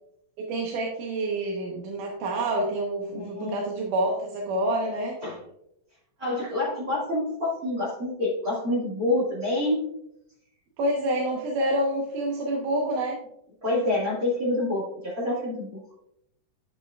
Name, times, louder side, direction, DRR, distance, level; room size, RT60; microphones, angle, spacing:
voice 1, 0.4-5.2 10.8-13.2, right 1 dB, 85° right, -2 dB, 2.6 m, -27 dB
voice 2, 3.1-3.6 5.2-5.4 6.2-9.8 13.6-15.8, left 2 dB, 35° right, -5 dB, 1.9 m, -27 dB
10.5 x 6.6 x 2.3 m, 0.79 s
omnidirectional pair, 3.6 m